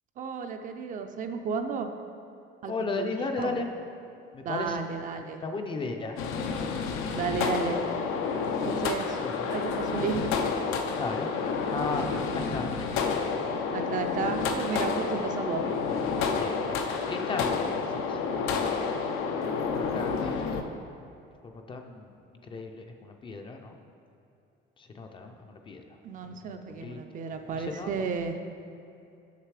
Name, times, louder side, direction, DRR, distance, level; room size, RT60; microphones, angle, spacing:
voice 1, 0.2-1.9 2.6-3.6 4.4-5.4 7.1-7.8 8.6-9.2 9.5-10.2 13.7-15.6 26.0-28.3, right 6 dB, 40° right, 6 dB, 0.4 m, -33 dB
voice 2, 2.6-3.7 4.3-4.8 5.2-6.2 9.2-9.4 10.9-11.3 11.7-12.1 12.3-13.2 14.5-14.6 16.2-16.8 17.1-18.2 18.6-18.9 19.8-20.7 21.4-22.1 22.5-23.8 24.8-25.8 26.7-27.0 27.5-28.1, left 3 dB, 25° left, 4 dB, 0.4 m, -35 dB
sound 1, 6.2-20.6, left 5 dB, 80° left, 0.6 m, -29 dB
6.6 x 6.5 x 4.8 m, 2.7 s
cardioid pair, 155°, 21 cm